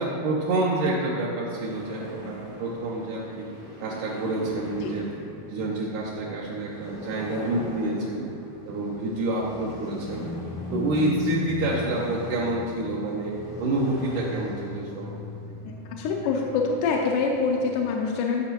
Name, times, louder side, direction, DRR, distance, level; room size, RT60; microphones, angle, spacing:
voice 1, 0.0-3.5 3.8-5.1 5.5-8.3 8.7-10.3 10.7-15.2, right 2 dB, 75° right, -4 dB, 2.2 m, -28 dB
sound 1, 1.6-17.8, left 1 dB, 30° left, 0.5 m, -38 dB
voice 2, 15.7-18.5, left 4 dB, 80° left, 0 dB, 2.1 m, -26 dB
13.5 x 5.9 x 2.9 m, 2.5 s
omnidirectional pair, 3.8 m